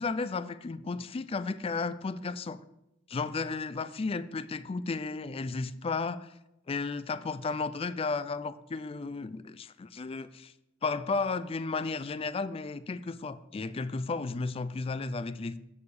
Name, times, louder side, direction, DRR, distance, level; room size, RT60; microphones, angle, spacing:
voice 1, 0.0-2.6 3.1-6.3 6.7-10.5 10.8-15.6, left 4 dB, 30° left, 14 dB, 0.4 m, -33 dB
8.4 x 4.8 x 6.8 m, 0.86 s
head